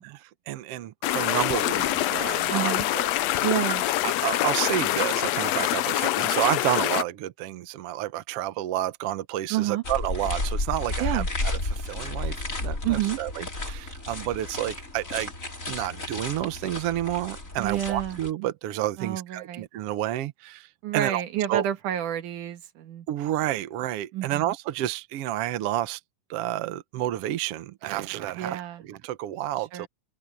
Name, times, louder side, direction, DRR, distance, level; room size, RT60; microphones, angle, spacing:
voice 1, 0.0-3.1 4.0-15.3 15.7-21.2 21.5-21.6 23.1-26.0 26.3-29.9, right 13 dB, 65° right, 1.6 m, -30 dB
sound 1, 1.0-7.0, left 15 dB, 75° left, 1.6 m, -25 dB
voice 2, 2.5-2.9 3.4-3.8 9.5-9.8 11.0-11.3 12.8-13.2 17.6-18.2 19.0-19.7 20.8-23.1 24.1-24.5 28.4-28.8 29.7-29.9, right 12 dB, 80° right, 2.9 m, -29 dB
sound 2, 9.8-18.3, left 2 dB, 25° left, 4.7 m, -32 dB
open air
omnidirectional pair, 3.6 m